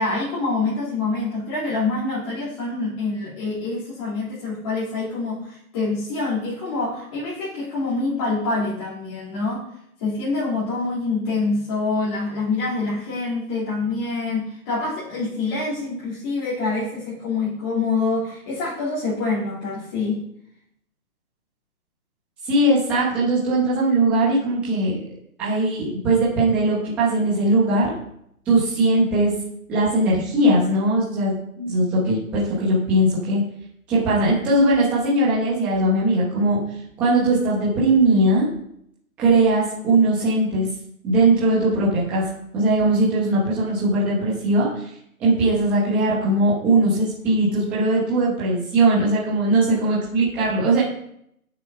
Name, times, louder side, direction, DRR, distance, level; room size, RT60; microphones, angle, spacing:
voice 1, 0.0-9.6 10.0-20.2 31.6-31.8, left 3 dB, 15° left, -8 dB, 2.7 m, -26 dB
voice 2, 22.5-25.1 25.4-27.9 28.5-29.3 29.7-31.3 31.7-33.4 33.9-36.6 37.0-38.5 39.2-40.7 41.0-42.2 42.5-44.9 45.2-50.8, right 2 dB, 5° right, -7 dB, 1.0 m, -19 dB
10.5 x 6.8 x 5.5 m, 0.72 s
hypercardioid pair, 165°, 45 cm